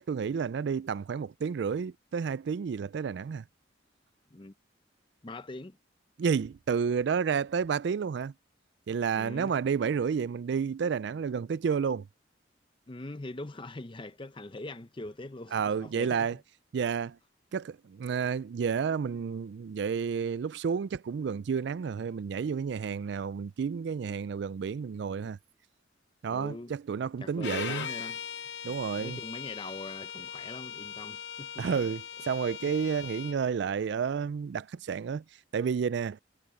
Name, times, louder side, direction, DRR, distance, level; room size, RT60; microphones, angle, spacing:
voice 1, 0.0-3.4 6.2-8.3 8.9-12.1 15.5-16.4 16.7-17.2 17.5-25.4 26.2-27.9 28.6-29.2 31.6-35.2 35.5-36.2, right 6 dB, 65° right, 0.3 m, -30 dB
voice 2, 5.2-5.8 9.1-9.5 12.9-16.4 26.3-26.7 27.2-28.2 28.7-31.8 32.7-32.8, left 2 dB, 25° left, 0.7 m, -42 dB
Bowed string instrument, 27.4-33.4, left 7 dB, 65° left, 0.7 m, -40 dB
head